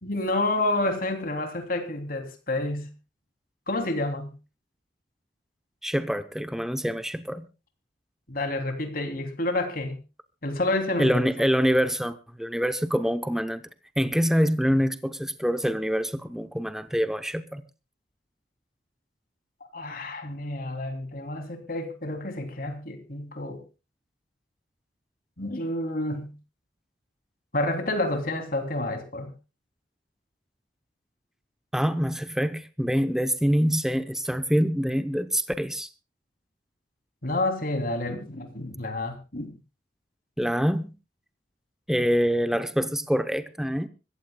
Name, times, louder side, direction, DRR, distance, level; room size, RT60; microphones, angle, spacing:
voice 1, 0.0-2.9 3.7-4.3 8.3-10.0 10.4-11.2 19.7-23.6 25.4-26.3 27.5-29.3 37.2-39.5, left 2 dB, 55° left, 3.1 m, -29 dB
voice 2, 5.8-7.5 11.0-13.6 14.0-17.6 31.7-35.9 40.4-40.9 41.9-43.9, equal, 5° right, 0.7 m, -25 dB
25.5 x 14.5 x 2.3 m
head